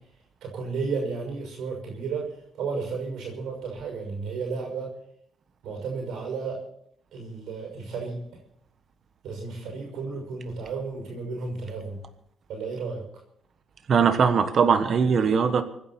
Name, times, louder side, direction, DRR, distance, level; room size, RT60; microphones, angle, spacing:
voice 1, 0.4-2.3 2.5-4.9 5.6-6.6 7.1-8.3 9.2-12.0 12.5-13.0, right 4 dB, 80° right, 1 dB, 6.1 m, -33 dB
voice 2, 13.9-15.6, right 6 dB, 55° right, 9 dB, 1.3 m, -20 dB
24.5 x 10.5 x 4.4 m, 0.70 s
cardioid pair, 90°, 0 cm